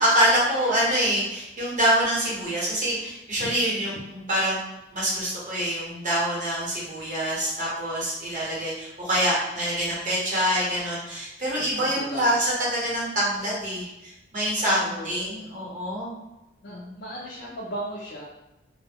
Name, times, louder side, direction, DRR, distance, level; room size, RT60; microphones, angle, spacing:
voice 1, 0.0-16.1 16.7-17.0, equal, 40° right, -6 dB, 1.0 m, -25 dB
voice 2, 3.4-3.9 11.6-12.3 14.8-15.5 16.6-18.2, equal, 55° left, -5 dB, 0.5 m, -37 dB
2.2 x 2.1 x 3.4 m, 0.96 s
head